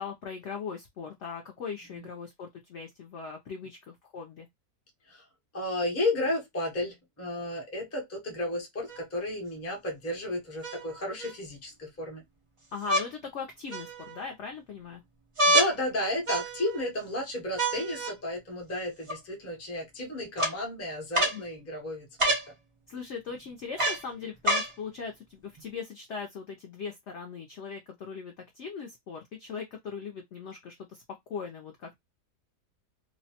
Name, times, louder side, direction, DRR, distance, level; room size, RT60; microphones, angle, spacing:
voice 1, 0.0-4.5 12.7-15.0 21.3-21.4 22.9-31.0 31.3-31.9, left 6 dB, 70° left, 0.6 m, -39 dB
voice 2, 5.5-12.2 15.5-22.4, left 1 dB, 20° left, 0.4 m, -33 dB
sound 1, 8.9-9.0 10.6-11.3 12.8-13.1 13.7-14.2 15.4-15.7 16.3-16.8 17.6-18.1 19.1-19.2 20.4-20.5 21.1-21.4 22.2-22.5 23.8-24.0 24.4-24.7 25.6-25.7, right 1 dB, 55° right, 0.3 m, -27 dB
2.7 x 2.1 x 2.7 m
omnidirectional pair, 1.8 m